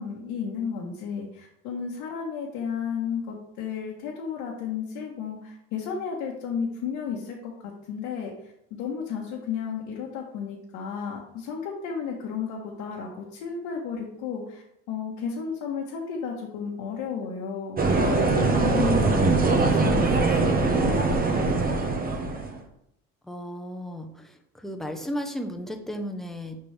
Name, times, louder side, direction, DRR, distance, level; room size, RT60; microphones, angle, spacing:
voice 1, 0.0-7.5 7.9-8.3 8.7-21.0, left 6 dB, 80° left, -3 dB, 1.5 m, -33 dB
sound 1, 17.8-22.6, right 3 dB, 30° right, 1.2 m, -22 dB
voice 2, 23.3-24.3 24.6-26.6, equal, ahead, 4 dB, 0.9 m, -34 dB
6.8 x 5.2 x 3.4 m, 0.74 s
supercardioid pair, 95°, 32 cm